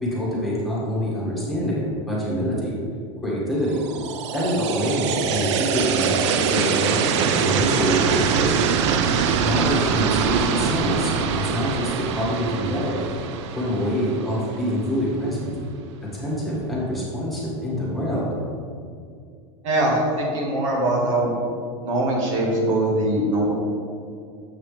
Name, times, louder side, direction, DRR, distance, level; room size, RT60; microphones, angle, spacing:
voice 1, 0.0-2.8 3.2-3.8 4.3-8.8 9.4-13.0 13.5-15.5 16.1-18.3, equal, ahead, -7 dB, 1.8 m, -25 dB
sound 1, 3.8-14.8, right 6 dB, 65° right, 0.6 m, -23 dB
voice 2, 19.6-21.3 21.8-23.5, right 1 dB, 85° right, -3 dB, 1.7 m, -22 dB
7.6 x 6.1 x 3.3 m, 2.3 s
supercardioid pair, 145°, 16 cm